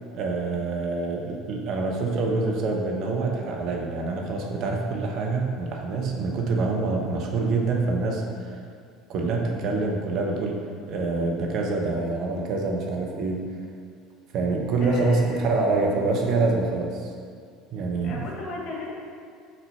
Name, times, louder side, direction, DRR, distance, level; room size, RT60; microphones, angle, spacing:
voice 1, 0.1-8.6 9.1-13.5 14.3-17.1 17.7-18.2, right 3 dB, 55° right, 0 dB, 0.9 m, -26 dB
voice 2, 14.8-15.6 18.0-18.9, left 2 dB, 50° left, -3 dB, 1.3 m, -36 dB
4.3 x 4.1 x 5.6 m, 2.2 s
hypercardioid pair, 70°, 0 cm